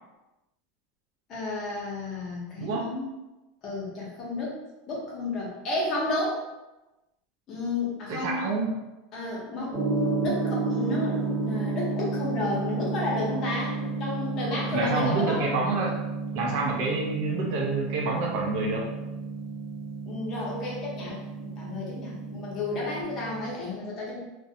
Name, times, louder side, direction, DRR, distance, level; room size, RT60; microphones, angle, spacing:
voice 1, 1.3-3.1 3.6-6.4 7.5-8.6 9.1-15.5 20.0-24.2, left 2 dB, 30° left, -4 dB, 0.7 m, -32 dB
voice 2, 2.6-2.9 8.1-8.7 14.7-16.0 16.3-18.9, right 3 dB, 50° right, -2 dB, 0.5 m, -28 dB
Gong, 9.7-23.5, right 3 dB, 15° right, 0.8 m, -32 dB
2.4 x 2.1 x 2.7 m, 1.0 s
supercardioid pair, 170°, 0 cm